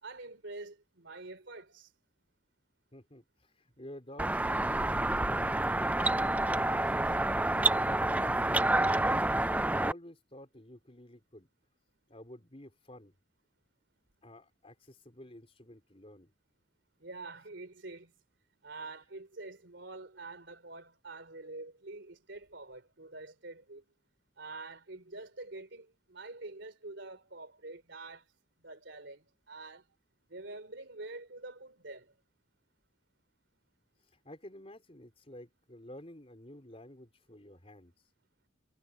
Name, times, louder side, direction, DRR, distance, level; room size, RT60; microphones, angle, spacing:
voice 1, 0.0-1.9 17.0-18.1 18.6-23.8 24.4-28.3 28.6-29.9 30.3-32.1, right 3 dB, 65° right, 3.3 m, -46 dB
voice 2, 2.9-5.5 5.9-7.1 7.7-9.1 9.6-11.5 12.1-13.1 14.2-16.3 34.0-37.9, left 1 dB, 30° left, 4.4 m, -51 dB
sound 1, 4.2-9.9, right 2 dB, 10° right, 0.4 m, -28 dB
head